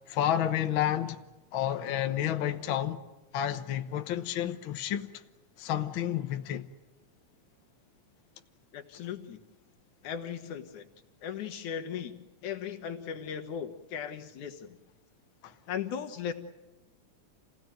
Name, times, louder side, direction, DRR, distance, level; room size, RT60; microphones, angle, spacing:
voice 1, 0.1-1.2 1.5-3.0 3.3-5.1 5.6-6.6 15.4-15.5, left 11 dB, 60° left, 1.4 m, -30 dB
voice 2, 8.7-9.4 10.0-10.9 11.2-12.1 12.4-14.8 15.7-16.3, left 8 dB, 75° left, 2.8 m, -37 dB
28.5 x 17.0 x 9.1 m
omnidirectional pair, 3.5 m